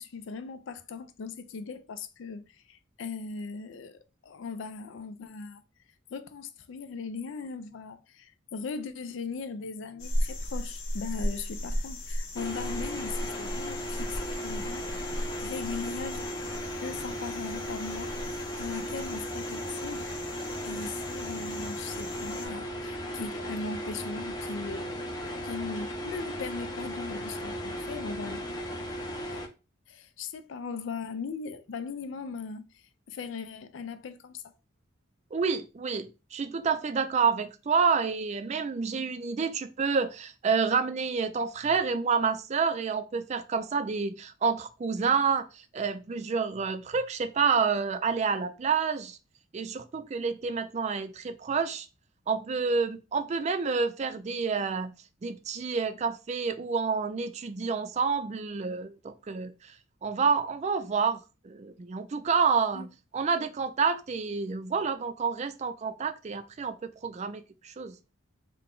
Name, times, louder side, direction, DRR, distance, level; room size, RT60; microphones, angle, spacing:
voice 1, 0.0-5.6 6.1-14.9 15.1-16.3 16.8-20.1 20.6-28.5 29.3-29.4 29.9-34.4 62.7-62.9, left 4 dB, 70° left, 0.4 m, -39 dB
sound 1, 10.0-22.5, equal, 85° left, 1.4 m, -36 dB
sound 2, 12.4-29.5, equal, 20° left, 0.6 m, -36 dB
voice 2, 35.3-45.5 45.7-49.2 49.5-51.9 52.3-54.9 55.2-59.5 60.0-68.0, right 5 dB, 35° right, 0.3 m, -29 dB
3.8 x 2.2 x 3.6 m
head